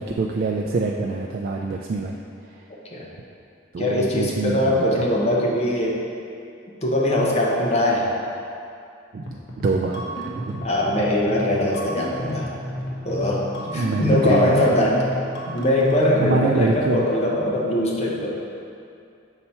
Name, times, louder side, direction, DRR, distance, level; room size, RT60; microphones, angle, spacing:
voice 1, 0.0-2.2 3.7-5.1 9.1-9.4 9.6-10.6 13.7-14.7 16.2-17.1, right 3 dB, 50° right, 1 dB, 0.3 m, -25 dB
voice 2, 3.8-6.0 6.8-8.1 10.6-12.5 13.0-13.4 13.7-15.0 15.5-18.3, left 1 dB, 35° left, -3 dB, 0.9 m, -21 dB
sound 1, 9.2-16.2, equal, 65° left, 0.9 m, -32 dB
5.8 x 4.2 x 4.3 m, 2.5 s
head